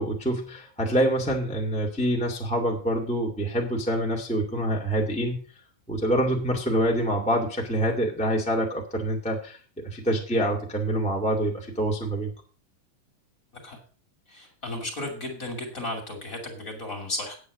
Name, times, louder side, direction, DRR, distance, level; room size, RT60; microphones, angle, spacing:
voice 1, 0.0-5.4 5.9-9.6 9.8-12.3, right 1 dB, 5° left, -1 dB, 1.4 m, -26 dB
voice 2, 14.3-17.4, left 1 dB, 25° left, 2 dB, 2.6 m, -34 dB
9.1 x 8.2 x 6.5 m, 0.40 s
omnidirectional pair, 3.7 m